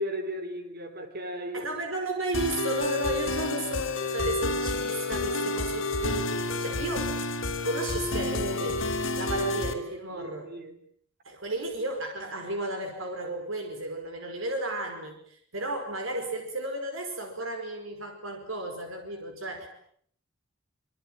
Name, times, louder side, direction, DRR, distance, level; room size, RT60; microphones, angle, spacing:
voice 1, 0.0-1.7 9.7-9.8 10.1-10.8, equal, 50° right, 4.4 m, -36 dB
voice 2, 1.5-8.8 9.2-10.5 11.2-19.7, right 1 dB, 75° right, 5.2 m, -33 dB
sound 1, 2.3-9.7, left 2 dB, 70° left, 4.1 m, -30 dB
26.5 x 25.0 x 9.0 m
head